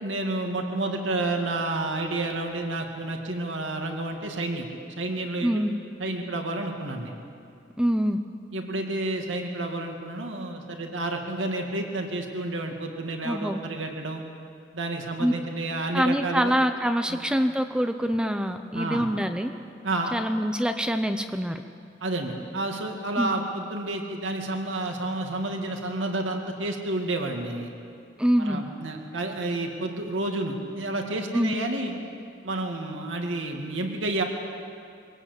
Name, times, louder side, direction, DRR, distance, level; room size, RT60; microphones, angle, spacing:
voice 1, 0.0-4.7 5.0-5.6 6.0-7.1 8.5-14.2 14.7-16.5 17.1-17.2 18.7-19.0 19.8-20.1 22.0-27.7 28.4-31.9 32.4-34.2, right 2 dB, 90° right, 2 dB, 2.3 m, -30 dB
voice 2, 5.4-5.7 7.8-8.2 13.2-13.6 15.2-15.3 15.9-19.5 20.1-21.6 23.2-23.3 28.2-28.6 31.3-31.5, equal, 5° right, 7 dB, 0.7 m, -25 dB
23.0 x 18.0 x 8.2 m, 2.4 s
head